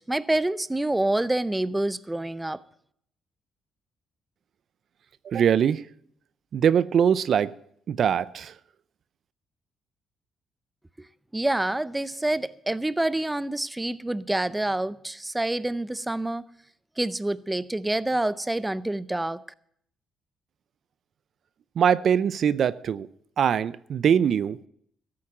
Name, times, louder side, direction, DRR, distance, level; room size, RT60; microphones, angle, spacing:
voice 1, 0.0-2.6 11.3-16.4 17.0-19.4, right 1 dB, 10° right, 0.5 m, -27 dB
voice 2, 5.2-5.8 6.5-7.5 7.9-8.5 21.8-23.1 23.4-24.7, right 8 dB, 60° right, 0.5 m, -22 dB
13.5 x 8.6 x 7.3 m
cardioid pair, 90°, 0 cm